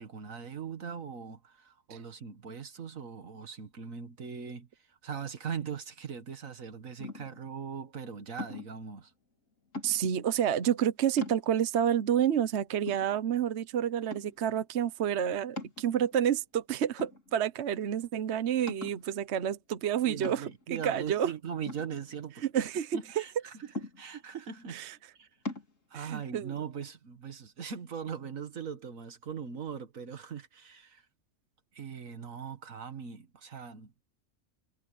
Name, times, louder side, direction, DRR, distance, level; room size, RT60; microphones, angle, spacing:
voice 1, 0.0-9.1 20.0-22.7 22.9-24.9 25.2-25.3 25.9-31.0 31.7-34.0, right 7 dB, 85° right, 2.0 m, -40 dB
sound 1, 7.0-7.5 8.4-8.8 9.7-10.3 10.8-10.9 11.2-11.8 12.4-12.5 12.9-13.6 14.1-14.5 15.6-16.3 17.0-17.6 18.0-18.1 18.7-19.1 20.2-20.7 21.7-22.6 23.8-24.3 25.5-25.7, left 3 dB, 75° left, 3.8 m, -41 dB
voice 2, 9.8-21.3 22.5-23.2 24.7-24.9 25.9-26.5, right 9 dB, 60° right, 1.1 m, -29 dB
omnidirectional pair, 1.4 m